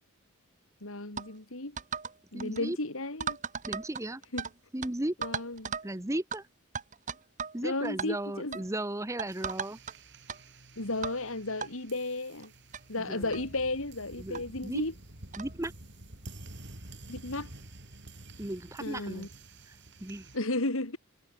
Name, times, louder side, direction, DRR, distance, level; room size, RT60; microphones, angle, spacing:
voice 1, 0.8-1.8 2.3-3.4 4.3-4.4 5.2-5.7 7.6-8.6 10.8-12.5 12.9-14.9 17.1-17.5 18.8-19.3 20.3-21.0, left 2 dB, 70° left, 3.0 m, -34 dB
sound 1, 1.2-1.3 1.8-2.1 2.4-2.6 3.2-4.5 4.8-4.9 5.2-5.9 6.3-6.4 6.8-7.6 7.8-8.1 8.5-8.7 9.2-9.9 10.3-10.4 11.0-11.2 11.6-11.7 12.4-12.5 12.7-12.8 13.3-13.5 14.3-14.4 15.3-15.5, right 6 dB, 35° right, 1.6 m, -36 dB
voice 2, 2.3-2.8 3.7-4.2 4.7-5.2 5.8-6.4 7.5-9.8 13.0-13.4 14.2-14.8 15.4-15.7 18.4-19.3 19.7-19.8 20.0-20.3, right 1 dB, 15° right, 0.8 m, -35 dB
sound 2, 9.3-20.4, right 2 dB, 55° right, 4.3 m, -49 dB
head